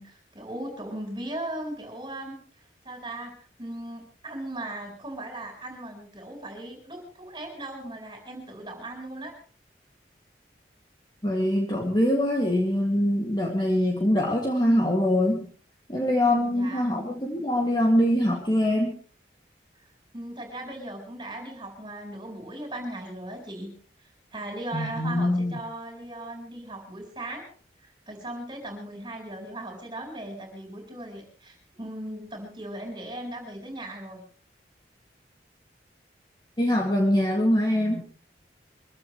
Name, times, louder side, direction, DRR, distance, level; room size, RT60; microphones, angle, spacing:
voice 1, 0.0-9.4 16.2-16.9 20.1-23.7 24.0-27.5 27.8-34.2, right 1 dB, 25° right, 3 dB, 4.6 m, -38 dB
voice 2, 11.2-15.5 15.9-19.0 24.7-25.5 36.6-38.0, left 1 dB, 25° left, 0 dB, 2.3 m, -23 dB
23.5 x 16.0 x 3.2 m, 0.40 s
head